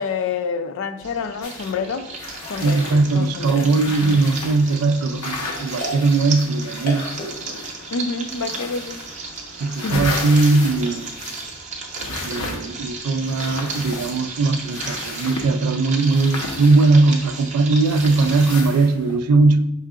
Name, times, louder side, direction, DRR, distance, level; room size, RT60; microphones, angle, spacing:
voice 1, 0.0-2.1 2.5-4.2 7.9-9.0 9.8-10.1, left 5 dB, 60° left, 0.4 m, -28 dB
sound 1, 1.0-18.5, right 4 dB, 35° right, 0.7 m, -35 dB
sound 2, 1.4-1.7 2.1-4.8 5.2-7.9 8.3-9.2 9.5-11.6 11.9-12.8 13.2-14.4 14.7-15.5 16.0-17.4 17.8-19.2, left 2 dB, 85° left, 0.9 m, -33 dB
sound 3, 2.2-11.0, left 1 dB, 40° left, 0.8 m, -39 dB
voice 2, 2.6-7.1 9.6-11.1 12.2-19.7, right 3 dB, 75° right, 0.3 m, -19 dB
5.6 x 3.6 x 2.4 m
head